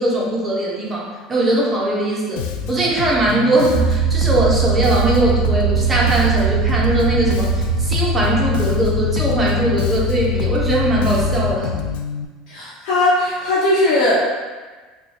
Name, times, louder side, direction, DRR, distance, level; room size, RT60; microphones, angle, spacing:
voice 1, 0.0-11.8, right 1 dB, 15° right, -4 dB, 0.9 m, -20 dB
Bass guitar, 2.4-12.2, left 7 dB, 80° left, 0.3 m, -28 dB
sound 1, 3.7-11.5, right 3 dB, 85° right, 0.4 m, -21 dB
voice 2, 12.5-14.2, left 1 dB, 55° left, -11 dB, 1.1 m, -18 dB
2.9 x 2.3 x 4.2 m, 1.3 s
supercardioid pair, 125°, 0 cm